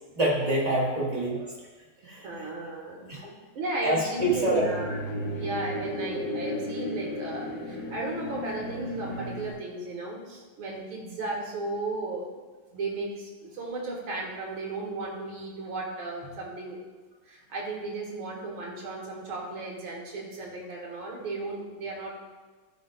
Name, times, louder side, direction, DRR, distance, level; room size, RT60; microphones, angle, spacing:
voice 1, 0.1-1.4 2.0-2.5 3.1-3.3 3.8-4.6, right 1 dB, 20° right, -5 dB, 1.2 m, -26 dB
voice 2, 2.0-5.0 5.3-12.3 12.7-16.8 17.2-22.1, right 2 dB, 75° right, -2 dB, 2.3 m, -35 dB
sound 1, 4.2-9.5, left 1 dB, 50° left, 1.1 m, -34 dB
13.0 x 5.2 x 2.3 m, 1.3 s
omnidirectional pair, 2.3 m